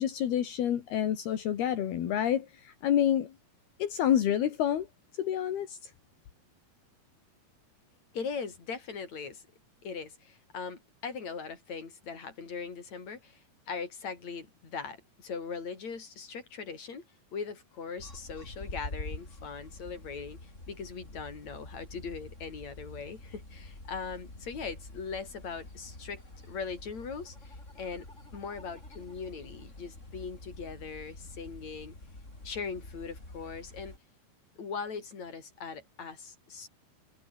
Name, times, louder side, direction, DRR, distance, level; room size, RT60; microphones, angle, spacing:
voice 1, 0.0-3.3 3.8-4.9 5.2-5.9, left 10 dB, 70° left, 4.1 m, -28 dB
voice 2, 8.1-9.4 9.8-17.0 17.3-28.1 28.3-31.9 32.4-34.0 34.6-36.7, left 5 dB, 45° left, 6.0 m, -40 dB
sound 1, 18.0-34.0, left 2 dB, 15° left, 5.8 m, -47 dB
omnidirectional pair, 4.7 m